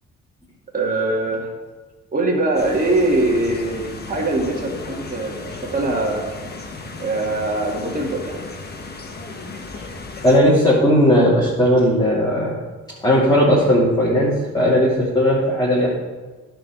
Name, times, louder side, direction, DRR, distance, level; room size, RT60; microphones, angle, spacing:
voice 1, 0.7-1.5 2.1-6.3 7.0-8.4, right 2 dB, 30° right, -1 dB, 2.1 m, -22 dB
sound 1, 2.5-10.4, left 3 dB, 35° left, 1.4 m, -35 dB
voice 2, 10.2-12.5 13.0-15.9, equal, 15° left, -7 dB, 2.6 m, -16 dB
11.0 x 4.5 x 7.4 m, 1.3 s
cardioid pair, 90°, 30 cm